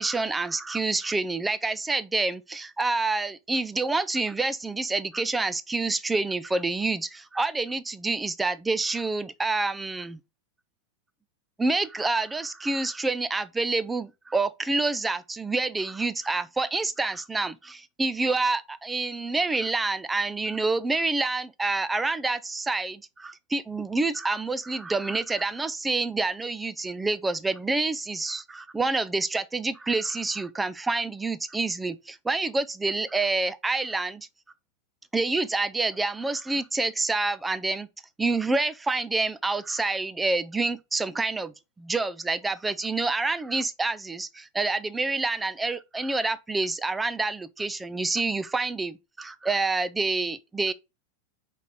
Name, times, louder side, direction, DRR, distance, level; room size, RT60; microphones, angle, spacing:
voice 1, 0.0-10.2 11.6-34.3 35.1-37.9 38.2-50.7, right 3 dB, 10° right, 0.5 m, -27 dB
5.1 x 4.1 x 4.9 m
figure-of-eight pair, 90°, 0 cm